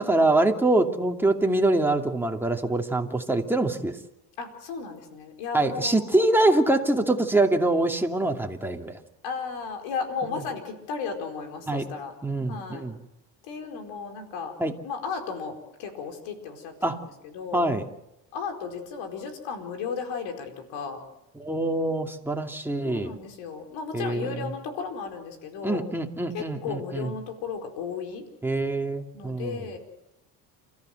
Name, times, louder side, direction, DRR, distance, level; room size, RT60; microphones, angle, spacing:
voice 1, 0.0-4.0 5.5-9.0 10.3-10.4 11.7-11.9 12.2-13.0 14.6-14.7 16.8-17.0 17.5-17.8 21.3-23.1 23.9-24.5 25.6-27.1 28.4-29.6, right 2 dB, 5° right, 2 dB, 2.6 m, -24 dB
voice 2, 4.4-6.2 9.2-12.1 12.5-12.8 13.4-14.5 14.8-17.7 18.3-21.0 22.8-25.8 26.3-28.3 29.1-29.8, left 5 dB, 75° left, 5 dB, 4.8 m, -35 dB
29.0 x 14.0 x 7.9 m, 0.87 s
supercardioid pair, 80°, 46 cm